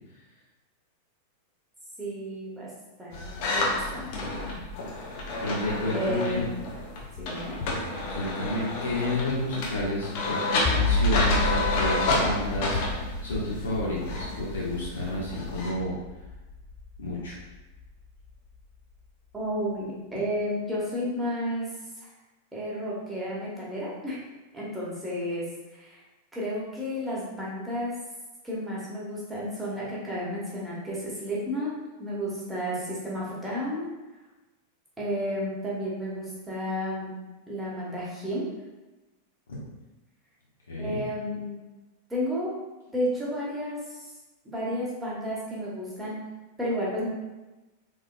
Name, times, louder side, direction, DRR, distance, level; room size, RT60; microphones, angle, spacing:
voice 1, 2.0-2.7 3.0-4.6 5.9-6.5 7.2-7.5 19.3-21.7 22.5-24.2 24.5-25.4 25.7-26.0 26.3-27.9 28.4-31.7 32.0-33.9 35.0-37.1 37.5-38.5 40.8-41.6 42.1-42.5 42.9-44.1 44.4-46.2 46.6-47.1, equal, 10° right, -7 dB, 1.2 m, -32 dB
sound 1, 3.1-15.7, left 2 dB, 45° left, 0.8 m, -30 dB
voice 2, 5.4-6.4 8.1-15.9 17.0-17.4 39.5-39.6 40.7-41.0, left 1 dB, 65° left, -6 dB, 1.2 m, -31 dB
sound 2, 10.7-17.9, left 2 dB, 10° left, 0.4 m, -30 dB
3.7 x 3.6 x 2.3 m, 1.1 s
figure-of-eight pair, 90°, 0 cm